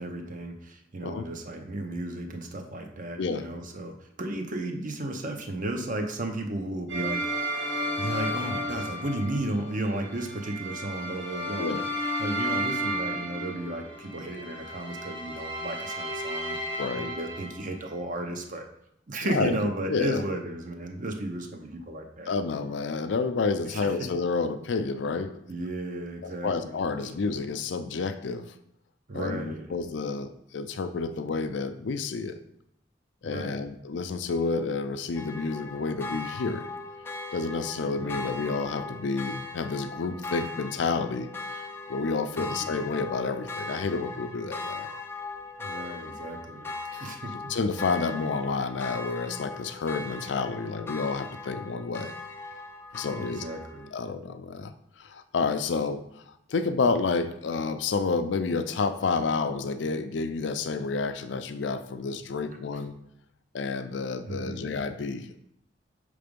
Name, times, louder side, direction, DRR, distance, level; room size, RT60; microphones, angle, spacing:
voice 1, 0.0-7.3 8.0-11.8 12.2-16.6 17.0-18.7 19.1-22.3 23.7-24.1 25.5-26.8 29.1-29.7 33.2-33.6 38.0-38.3 42.4-42.7 45.6-46.7 47.0-47.5 53.2-53.9 64.3-64.7, right 1 dB, 45° right, 4 dB, 0.8 m, -34 dB
sound 1, 6.9-17.9, equal, 75° right, 1.5 m, -33 dB
voice 2, 16.8-17.1 19.2-19.6 19.9-20.2 22.3-25.3 26.2-28.5 29.1-32.4 33.2-36.7 37.3-41.3 41.9-44.9 46.9-47.1 47.5-52.1 52.9-53.5 53.9-62.9 63.5-65.4, left 4 dB, 70° left, 10 dB, 0.5 m, -30 dB
sound 2, 35.1-53.9, left 3 dB, 15° left, 0.5 m, -39 dB
6.0 x 3.4 x 5.2 m, 0.76 s
head